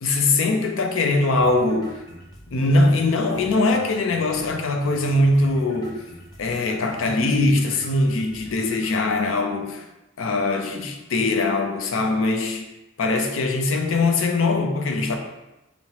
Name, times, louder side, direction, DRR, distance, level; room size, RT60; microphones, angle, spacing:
voice 1, 0.0-1.9 2.5-6.0 6.4-9.9 10.2-12.6 13.0-15.2, left 2 dB, 80° left, 4 dB, 0.5 m, -21 dB
sound 1, 1.3-9.3, left 1 dB, 20° left, 0.6 m, -45 dB
5.5 x 2.0 x 2.9 m, 0.98 s
head